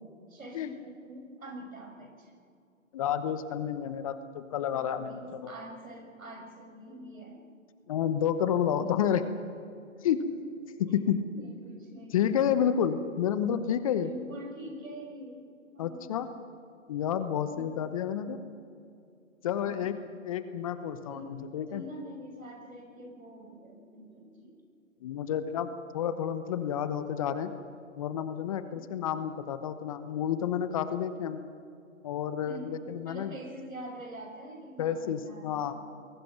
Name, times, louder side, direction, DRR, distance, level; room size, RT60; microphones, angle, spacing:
voice 1, 0.3-2.4 4.9-7.4 8.7-8.9 9.8-10.2 10.9-11.0 11.3-12.5 14.0-15.4 15.7-16.1 17.4-17.8 19.6-19.8 21.1-21.3 21.7-24.6 28.6-28.8 32.4-35.8, right 1 dB, 75° right, 2 dB, 6.4 m, -45 dB
voice 2, 2.9-5.5 7.9-9.2 10.0-10.2 10.8-11.2 12.1-14.1 15.8-16.3 16.9-18.4 19.4-20.0 20.2-21.8 25.0-25.7 25.9-27.5 28.0-31.4 32.0-33.3 34.8-35.8, left 9 dB, 25° left, 11 dB, 0.9 m, -30 dB
29.0 x 21.5 x 6.0 m, 2.4 s
figure-of-eight pair, 140°, 40 cm